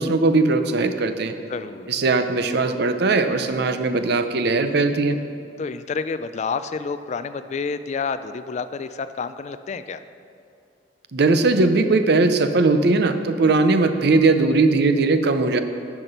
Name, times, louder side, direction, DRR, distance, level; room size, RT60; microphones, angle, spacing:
voice 1, 0.0-1.3 1.9-5.2 11.1-15.6, right 3 dB, 60° right, 9 dB, 0.6 m, -19 dB
voice 2, 1.5-1.9 5.6-10.0, left 5 dB, 40° left, 12 dB, 0.3 m, -29 dB
11.0 x 5.9 x 6.6 m, 2.5 s
head